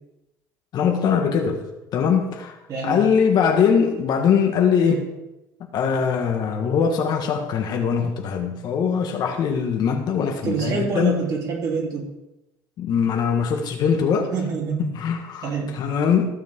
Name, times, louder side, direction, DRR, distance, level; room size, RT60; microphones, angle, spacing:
voice 1, 0.7-1.6 1.9-2.6 2.8-5.1 5.7-11.2 12.8-14.3 14.8-16.3, left 7 dB, 50° left, 4 dB, 1.5 m, -21 dB
voice 2, 2.7-3.0 10.4-12.1 14.3-14.9 15.4-15.8, right 5 dB, 45° right, -2 dB, 3.4 m, -26 dB
15.0 x 7.3 x 3.7 m, 0.95 s
cardioid pair, 135°, 9 cm